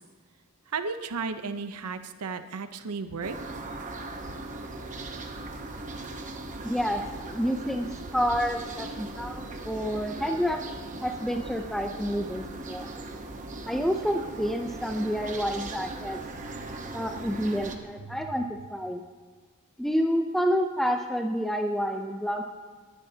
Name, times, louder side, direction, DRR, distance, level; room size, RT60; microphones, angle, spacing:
voice 1, 0.7-3.4 18.0-18.2, right 5 dB, 85° right, 10 dB, 0.7 m, -34 dB
sound 1, 3.2-17.8, right 2 dB, 35° right, 1.0 m, -39 dB
voice 2, 6.6-7.0 7.3-10.6 11.0-12.9 13.7-16.2 16.9-19.0 19.8-22.4, equal, ahead, 3 dB, 0.5 m, -29 dB
19.0 x 11.0 x 2.8 m, 1.5 s
head